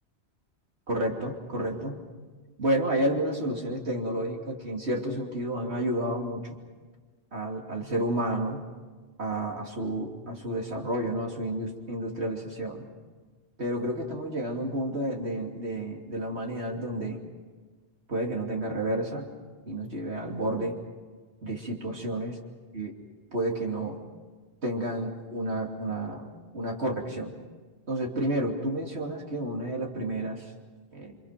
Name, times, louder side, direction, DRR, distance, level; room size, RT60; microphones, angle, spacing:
voice 1, 0.9-2.0 2.6-6.6 7.3-8.6 9.2-12.9 13.6-17.2 18.1-19.3 19.7-20.8 21.4-22.3 22.7-22.9 23.3-24.0 24.6-26.3 26.5-27.3 27.9-30.4 30.9-31.2, right 1 dB, 75° right, 1 dB, 3.2 m, -30 dB
29.0 x 25.5 x 6.0 m, 1.4 s
omnidirectional pair, 1.1 m